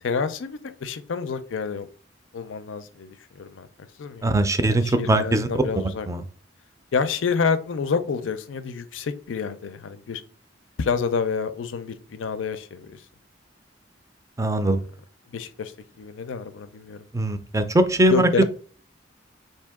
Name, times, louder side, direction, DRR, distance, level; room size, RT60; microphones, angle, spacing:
voice 1, 0.0-1.9 2.3-3.7 4.0-4.3 4.7-6.1 6.9-10.2 10.8-13.0 15.3-17.0 18.1-18.4, left 5 dB, 85° left, 0.5 m, -28 dB
voice 2, 4.2-5.5 6.1-6.2 14.4-14.8 17.1-18.4, right 1 dB, 15° right, 0.4 m, -21 dB
4.5 x 2.7 x 3.5 m
head